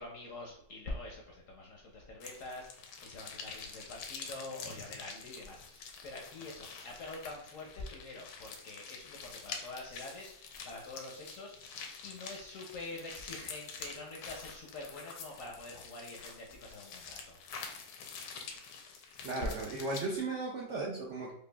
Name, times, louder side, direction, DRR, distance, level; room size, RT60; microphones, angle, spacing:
voice 1, 0.0-17.4, left 2 dB, 65° left, 0 dB, 0.8 m, -46 dB
sound 1, 2.2-20.2, left 5 dB, 85° left, 1.3 m, -47 dB
voice 2, 19.2-21.3, right 3 dB, 80° right, -2 dB, 0.6 m, -36 dB
5.1 x 2.3 x 2.2 m, 0.73 s
omnidirectional pair, 1.9 m